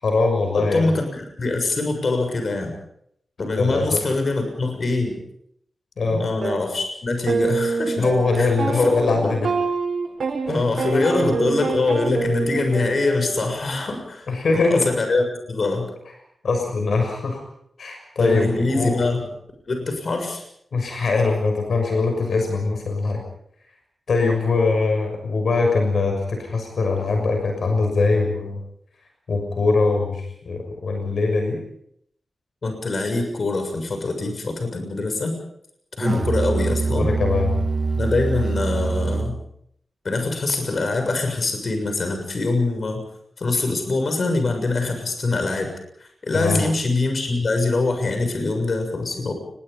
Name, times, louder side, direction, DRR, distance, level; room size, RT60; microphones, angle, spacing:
voice 1, 0.0-0.9 3.5-4.0 6.0-6.2 8.0-9.5 10.9-11.3 14.3-14.9 16.4-17.4 17.8-19.0 20.7-23.2 24.1-28.6 29.3-31.6 36.1-36.3 36.9-37.5 46.3-46.6, left 3 dB, 75° left, 4 dB, 6.3 m, -22 dB
voice 2, 0.6-2.7 3.4-5.2 6.2-8.0 8.4-9.3 10.5-14.3 14.5-15.9 18.2-19.3 19.7-20.4 32.6-35.4 36.0-37.1 37.9-39.4 40.0-43.0 43.4-45.7 46.0-49.3, left 3 dB, 55° left, 5 dB, 6.9 m, -24 dB
sound 1, 6.4-6.6 7.3-13.6, right 4 dB, 80° right, 7.7 m, -26 dB
Musical instrument, 36.0-39.5, right 3 dB, 45° right, 1.6 m, -24 dB
29.0 x 21.5 x 5.4 m, 0.71 s
wide cardioid pair, 95°, 0 cm